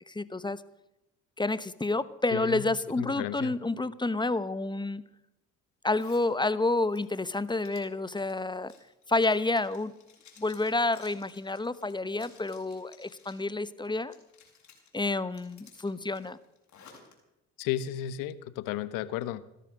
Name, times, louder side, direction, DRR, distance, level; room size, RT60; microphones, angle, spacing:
voice 1, 0.1-0.6 1.4-5.0 5.8-8.7 9.1-9.9 10.4-14.1 14.9-16.4, left 2 dB, 15° left, 16 dB, 1.0 m, -29 dB
voice 2, 2.3-2.7 3.0-3.5 17.6-19.4, left 12 dB, 75° left, 16 dB, 1.1 m, -33 dB
Zipper (clothing), 5.9-6.3 6.7-13.5 13.8-14.9 15.3-17.1, left 6 dB, 55° left, 6.0 m, -57 dB
17.0 x 13.0 x 6.5 m, 0.90 s
supercardioid pair, 65°, 33 cm